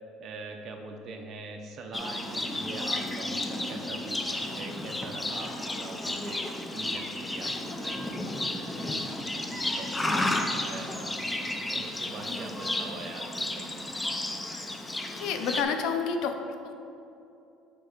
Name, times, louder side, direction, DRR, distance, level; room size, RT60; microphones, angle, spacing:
voice 1, 0.2-8.3 8.6-9.3 9.5-11.2 11.7-14.3, right 3 dB, 45° right, 2 dB, 0.8 m, -43 dB
Livestock farm animals working animals, 1.9-15.6, left 1 dB, 10° left, 0.5 m, -32 dB
voice 2, 15.1-16.7, left 5 dB, 65° left, 6 dB, 0.6 m, -29 dB
6.8 x 4.6 x 5.1 m, 2.7 s
cardioid pair, 150°, 0 cm